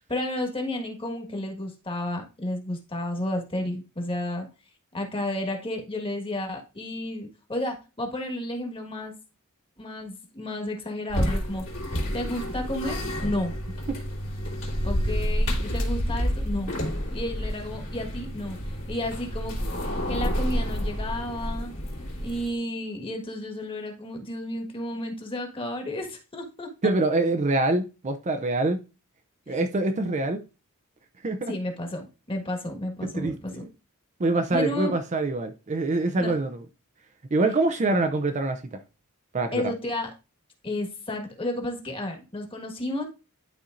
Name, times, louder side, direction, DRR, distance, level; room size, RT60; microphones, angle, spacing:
voice 1, 0.1-4.5 4.9-9.2 9.8-11.6 12.1-13.5 14.8-16.7 17.1-18.6 18.9-19.6 20.1-21.7 22.2-26.7 29.5-29.6 31.5-33.6 34.5-34.9 36.2-36.4 39.5-40.1 40.6-43.0, left 1 dB, 25° left, 1.5 m, -32 dB
sound 1, 11.1-22.5, equal, 65° left, 2.4 m, -29 dB
voice 2, 26.8-28.8 29.5-30.4 31.2-31.5 33.0-33.7 34.2-36.6 37.3-38.8 39.3-39.7, right 2 dB, 35° right, 0.5 m, -25 dB
11.5 x 4.3 x 2.5 m
head